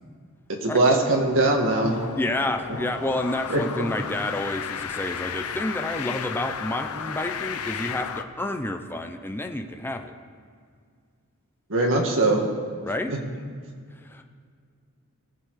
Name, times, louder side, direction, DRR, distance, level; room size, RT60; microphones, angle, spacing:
voice 1, 0.6-2.0 3.5-3.6 11.7-12.4 13.1-13.2, right 2 dB, 60° right, 1 dB, 1.9 m, -21 dB
sound 1, 1.2-8.2, left 7 dB, 75° left, 0.7 m, -34 dB
voice 2, 2.1-10.1 12.8-13.1 14.1-14.2, left 1 dB, 10° left, 5 dB, 0.6 m, -29 dB
19.5 x 6.9 x 4.9 m, 2.1 s
head